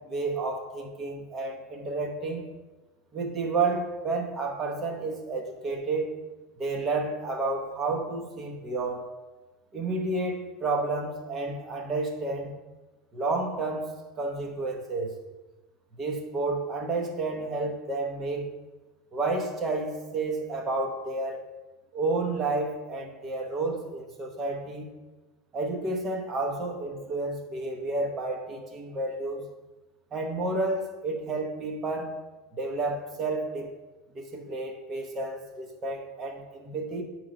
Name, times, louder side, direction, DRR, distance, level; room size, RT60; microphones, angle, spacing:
voice 1, 0.1-2.5 3.1-6.1 6.6-9.1 9.7-12.5 13.1-15.2 16.0-18.5 19.1-21.4 21.9-24.9 25.5-29.5 30.1-32.1 32.6-33.7 34.1-37.0, right 3 dB, 20° right, 1 dB, 0.7 m, -31 dB
7.4 x 3.0 x 5.0 m, 1.1 s
cardioid pair, 180°, 0 cm